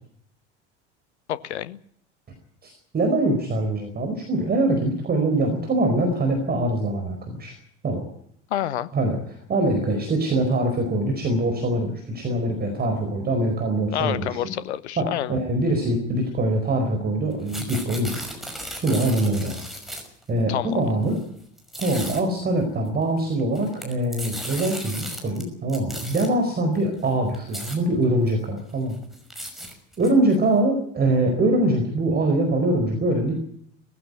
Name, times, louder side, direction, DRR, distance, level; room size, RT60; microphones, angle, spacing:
voice 1, 1.3-1.8 8.5-8.9 13.9-15.4 20.5-20.8, left 12 dB, 65° left, 1.1 m, -28 dB
voice 2, 2.6-7.5 7.8-8.0 8.9-14.5 15.0-18.2 18.8-19.6 20.3-21.2 21.8-29.0 30.0-33.3, right 1 dB, 25° right, 4.6 m, -23 dB
sound 1, 17.3-20.2 21.0-21.2 21.6-22.2 23.4-25.4 25.7-26.3 27.0-27.1 27.3-27.8 28.3-28.4 28.7-30.4, equal, ahead, 5.7 m, -35 dB
19.0 x 15.5 x 9.3 m
figure-of-eight pair, 70°, 36 cm